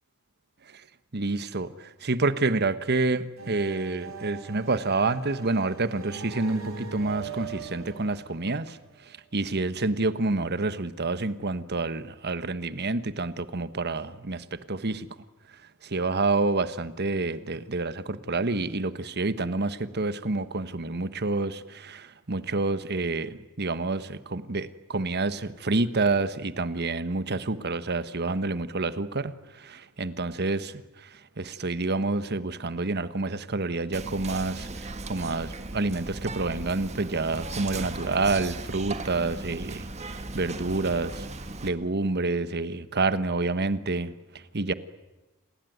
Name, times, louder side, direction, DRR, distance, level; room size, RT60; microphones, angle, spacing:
voice 1, 1.1-15.1 15.5-41.3 41.6-44.7, right 3 dB, 50° right, 1.2 m, -28 dB
sound 1, 3.4-9.1, right 5 dB, 65° right, 6.6 m, -41 dB
Whispering, 33.9-41.7, right 2 dB, 30° right, 1.8 m, -37 dB
28.5 x 20.5 x 9.4 m
head